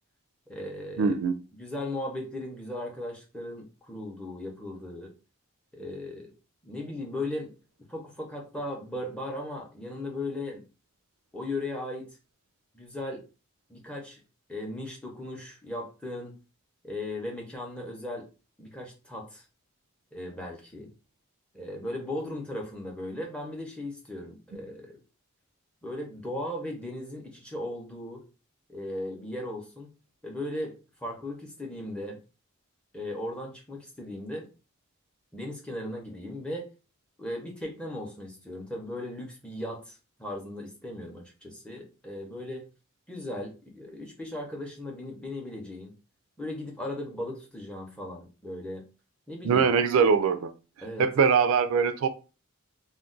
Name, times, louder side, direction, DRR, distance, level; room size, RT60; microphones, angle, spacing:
voice 1, 0.5-1.2 1.5-5.1 5.7-6.3 6.6-7.5 7.9-10.6 11.3-12.1 12.7-13.2 13.7-14.2 14.5-16.3 16.8-18.3 18.6-19.4 20.1-20.9 21.5-25.0 25.8-28.2 28.7-29.9 30.2-32.2 32.9-34.5 35.3-36.7 37.2-42.7 43.1-45.9 46.4-48.8 49.3-49.7 50.8-51.1, left 1 dB, 5° left, 1 dB, 0.5 m, -37 dB
voice 2, 1.0-1.3 49.4-50.5 51.0-52.1, right 6 dB, 70° right, 10 dB, 0.3 m, -22 dB
2.3 x 2.1 x 3.7 m, 0.33 s
head